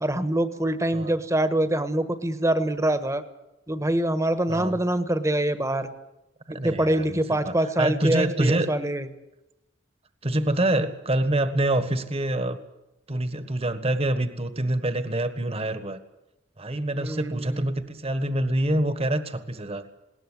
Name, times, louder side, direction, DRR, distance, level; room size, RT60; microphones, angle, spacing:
voice 1, 0.0-3.2 3.7-5.9 6.6-9.1 17.0-17.7, right 1 dB, 15° right, 10 dB, 1.3 m, -25 dB
voice 2, 4.5-4.8 6.5-8.7 10.2-12.6 13.1-16.0 16.6-19.8, right 1 dB, 35° right, 11 dB, 1.4 m, -26 dB
20.0 x 18.0 x 9.8 m, 0.94 s
head